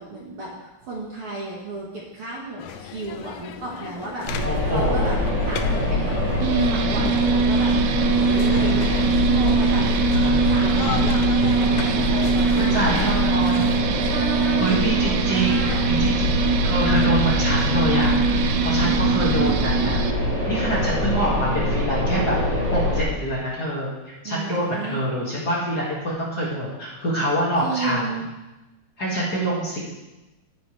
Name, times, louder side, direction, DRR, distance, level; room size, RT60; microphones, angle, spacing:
voice 1, 0.0-5.2 5.4-9.8 10.4-13.4 14.0-15.9 18.8-19.4 24.2-25.1 27.6-28.3, right 2 dB, 55° right, -4 dB, 2.1 m, -34 dB
sound 1, 2.6-13.8, left 8 dB, 80° left, 2.1 m, -35 dB
sound 2, 4.3-23.0, left 1 dB, 30° right, 1.5 m, -24 dB
voice 2, 4.4-5.9 10.1-10.5 12.1-12.3 12.6-13.7 14.6-16.3 16.6-18.1 18.6-20.0 20.5-22.4 22.7-28.0 29.0-29.8, equal, 35° left, -6 dB, 2.2 m, -25 dB
sound 3, 6.4-20.1, right 5 dB, 80° right, 1.8 m, -22 dB
14.0 x 6.9 x 3.3 m, 1.0 s
omnidirectional pair, 3.5 m